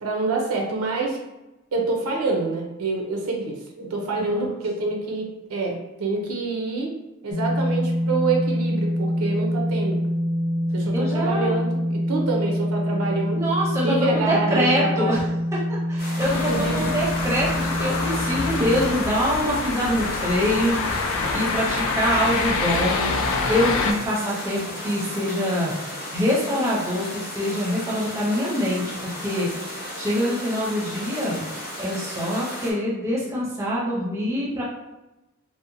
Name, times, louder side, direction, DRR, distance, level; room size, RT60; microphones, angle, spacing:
voice 1, 0.0-1.2 1.7-6.9 7.2-10.1 10.7-13.4 13.8-15.3 16.4-16.9, right 3 dB, 85° right, 0 dB, 0.6 m, -27 dB
sound 1, 7.3-18.9, equal, 85° left, 0.7 m, -25 dB
voice 2, 10.9-11.6 13.3-15.2 15.7-25.7 26.1-28.8 29.2-29.5 30.0-31.4 31.8-34.6, equal, 15° right, -5 dB, 0.5 m, -25 dB
sound 2, 16.0-32.7, left 1 dB, 35° left, 0.7 m, -35 dB
sound 3, 16.2-23.9, left 4 dB, 65° left, 0.3 m, -26 dB
2.8 x 2.1 x 2.5 m, 0.98 s
head